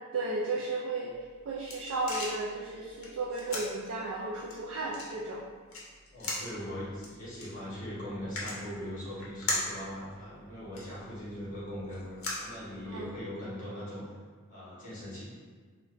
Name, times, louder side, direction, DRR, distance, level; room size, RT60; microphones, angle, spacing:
voice 1, 0.1-1.1 1.5-5.4 12.9-13.1, right 2 dB, 70° right, -5 dB, 0.4 m, -34 dB
sound 1, 1.1-13.2, left 2 dB, 65° left, 0.6 m, -41 dB
voice 2, 6.1-14.0 14.5-15.2, equal, 40° left, -9 dB, 1.1 m, -40 dB
3.8 x 2.2 x 2.4 m, 1.5 s
head